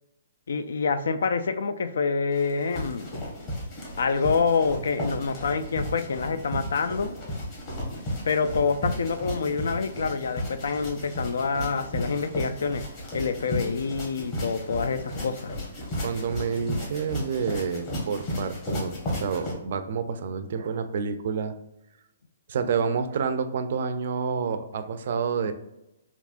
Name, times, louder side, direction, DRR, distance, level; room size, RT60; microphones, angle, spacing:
voice 1, 0.5-3.1 4.0-7.1 8.3-12.8 13.1-15.5, left 5 dB, 75° left, 11 dB, 0.3 m, -27 dB
sound 1, 2.3-19.5, left 1 dB, 30° left, 1.2 m, -34 dB
voice 2, 16.0-21.5 22.5-25.5, right 6 dB, 55° right, 10 dB, 0.4 m, -29 dB
3.5 x 2.9 x 2.4 m, 0.87 s
hypercardioid pair, 155°, 0 cm